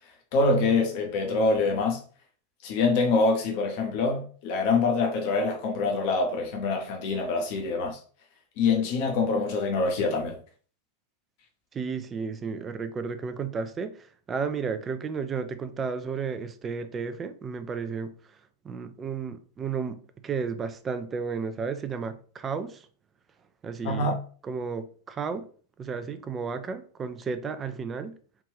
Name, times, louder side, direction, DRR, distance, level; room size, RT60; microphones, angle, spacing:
voice 1, 0.3-2.0 2.6-8.0 8.6-10.4 23.8-24.2, left 3 dB, 45° left, 0.7 m, -25 dB
voice 2, 11.7-18.1 18.6-22.9 23.6-24.2 24.4-25.5 25.8-28.1, right 5 dB, 20° right, 0.4 m, -33 dB
3.4 x 2.4 x 3.2 m
figure-of-eight pair, 90°, 0 cm